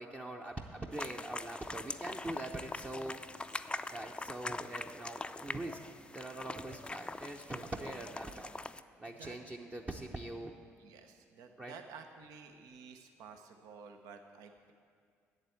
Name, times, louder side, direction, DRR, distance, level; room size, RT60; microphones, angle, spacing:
voice 1, 0.0-3.2 3.9-8.5 9.0-10.5 11.6-11.7, right 1 dB, 25° right, 0 dB, 0.8 m, -43 dB
sound 1, 0.9-8.8, left 2 dB, 15° left, 0.4 m, -43 dB
voice 2, 10.8-14.7, right 5 dB, 70° right, 6 dB, 0.7 m, -52 dB
8.0 x 7.4 x 8.4 m, 2.1 s
hypercardioid pair, 55°, 6 cm